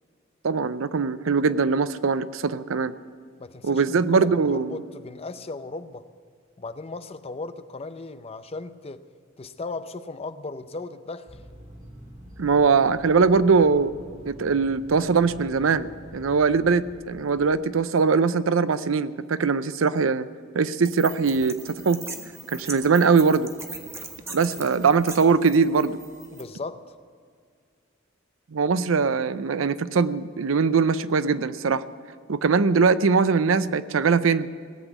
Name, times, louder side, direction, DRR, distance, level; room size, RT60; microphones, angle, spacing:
voice 1, 0.4-2.9 3.6-4.8 12.4-13.9 14.2-20.3 20.5-22.0 22.5-23.5 24.3-26.0 28.5-31.8 32.3-34.5, right 5 dB, 85° right, 0.6 m, -21 dB
voice 2, 3.4-6.1 6.6-9.0 9.4-11.4 24.6-24.8 26.3-27.0, left 3 dB, 30° left, 0.6 m, -37 dB
sound 1, 11.3-17.9, equal, 40° right, 2.9 m, -46 dB
sound 2, 20.8-26.4, right 3 dB, 15° right, 1.2 m, -40 dB
18.0 x 8.1 x 9.1 m
head